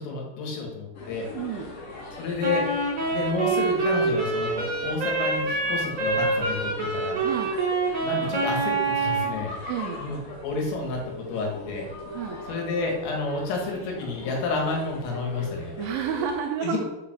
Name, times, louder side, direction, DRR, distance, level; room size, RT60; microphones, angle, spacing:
voice 1, 0.0-1.3 2.2-2.7 3.1-7.2 8.0-9.5 10.0-11.9 12.5-15.7 16.6-16.9, left 3 dB, 80° left, 0 dB, 4.3 m, -30 dB
sound 1, 0.9-16.3, left 2 dB, 55° left, 4.1 m, -42 dB
voice 2, 1.3-1.7 7.2-7.5 9.7-10.0 12.1-12.4 15.8-16.8, right 8 dB, 85° right, 4 dB, 2.7 m, -30 dB
Wind instrument woodwind instrument, 2.4-9.4, right 3 dB, 25° right, 3.1 m, -26 dB
sound 2, 11.0-11.6 11.9-16.3, left 1 dB, 40° right, 2.0 m, -41 dB
8.3 x 5.0 x 6.1 m, 1.1 s
omnidirectional pair, 5.8 m